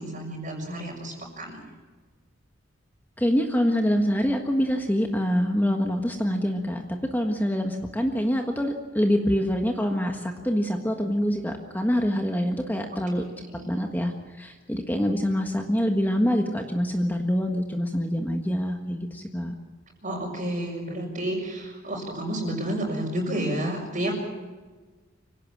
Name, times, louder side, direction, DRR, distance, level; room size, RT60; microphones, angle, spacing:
voice 1, 0.0-1.6 13.5-13.7 20.0-24.2, right 1 dB, 40° right, -5 dB, 5.4 m, -30 dB
voice 2, 3.2-13.2 13.7-19.5, equal, 10° left, 3 dB, 1.6 m, -25 dB
25.0 x 17.5 x 7.4 m, 1.3 s
head